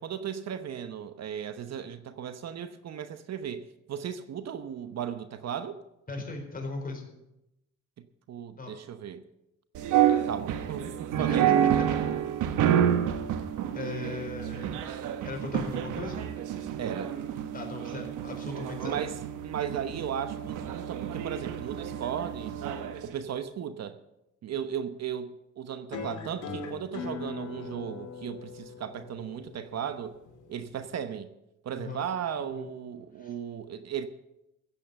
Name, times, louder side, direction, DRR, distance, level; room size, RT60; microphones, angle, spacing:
voice 1, 0.0-5.8 8.3-9.2 10.1-11.7 16.8-17.1 18.8-22.6 23.0-24.0 24.4-30.2 30.5-31.3 31.6-34.1, right 8 dB, 60° right, 1.0 m, -36 dB
voice 2, 6.1-7.1 8.6-8.7 11.2-11.9 13.7-14.8 15.2-16.2 17.5-19.0 31.7-32.0 32.5-32.7 33.2-33.3, left 3 dB, 30° left, 4.4 m, -38 dB
sound 1, 9.7-23.0, right 10 dB, 85° right, 1.2 m, -29 dB
sound 2, 25.9-30.9, left 4 dB, 75° left, 2.4 m, -41 dB
15.0 x 8.5 x 7.0 m
cardioid pair, 90°, 30 cm